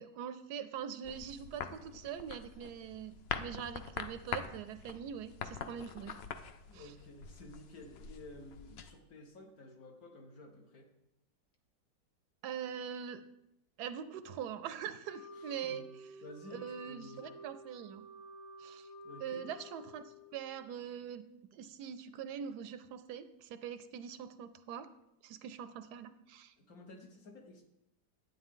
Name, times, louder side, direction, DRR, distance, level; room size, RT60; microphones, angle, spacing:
voice 1, 0.0-6.2 6.7-6.9 12.4-13.2 13.8-16.1 16.5-18.0 18.6-18.9 19.2-21.2 21.5-24.9 25.2-26.5, right 8 dB, 75° right, 12 dB, 1.1 m, -43 dB
sound 1, 1.0-8.9, left 7 dB, 90° left, 0.5 m, -44 dB
voice 2, 6.7-10.9 15.4-15.9 16.2-17.3 19.0-19.5 26.6-27.6, left 1 dB, 60° left, 2 dB, 1.7 m, -53 dB
Wind instrument woodwind instrument, 15.0-20.7, left 1 dB, 45° left, 1.8 m, -52 dB
9.8 x 9.0 x 3.7 m, 0.84 s
omnidirectional pair, 1.8 m